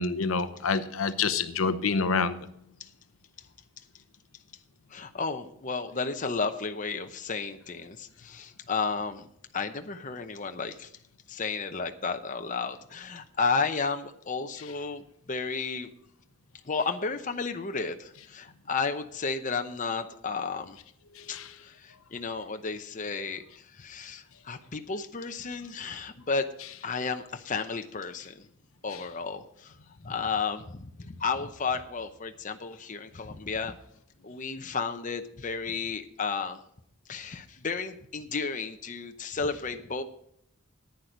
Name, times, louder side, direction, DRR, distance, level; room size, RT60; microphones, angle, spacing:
voice 1, 0.0-2.4 21.2-21.5, left 4 dB, 70° left, 11 dB, 0.8 m, -27 dB
voice 2, 4.9-9.3 9.5-10.9 11.3-15.9 16.7-20.8 21.3-26.5 26.8-28.5 28.8-29.8 30.0-33.7 34.2-36.6 37.1-40.0, left 4 dB, 35° left, 7 dB, 0.8 m, -33 dB
10.5 x 9.5 x 5.1 m, 0.72 s
head